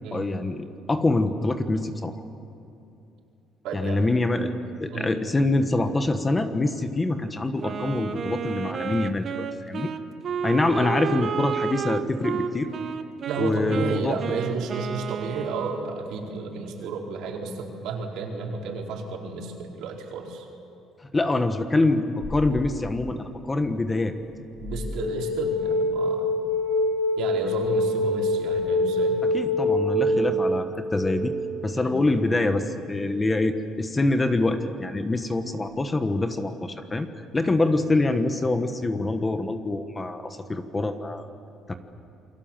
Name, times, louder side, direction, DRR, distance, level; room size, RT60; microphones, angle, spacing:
voice 1, 0.1-2.1 3.7-4.5 4.8-9.9 10.4-12.7 13.4-14.2 21.1-24.1 29.3-31.3 31.6-37.1 37.3-41.3 41.7-41.8, left 2 dB, 15° left, 8 dB, 1.4 m, -25 dB
voice 2, 3.6-4.1 4.9-5.1 13.3-20.4 24.6-26.4 27.2-29.2 30.1-30.3 31.7-31.9, right 4 dB, 75° right, 0 dB, 4.7 m, -32 dB
Wind instrument woodwind instrument, 7.6-16.0, right 6 dB, 40° right, 1.2 m, -31 dB
sound 1, 22.2-23.0 24.6-32.3, left 1 dB, 80° left, 7.6 m, -26 dB
28.5 x 23.0 x 7.5 m, 2.8 s
cardioid pair, 135°, 0 cm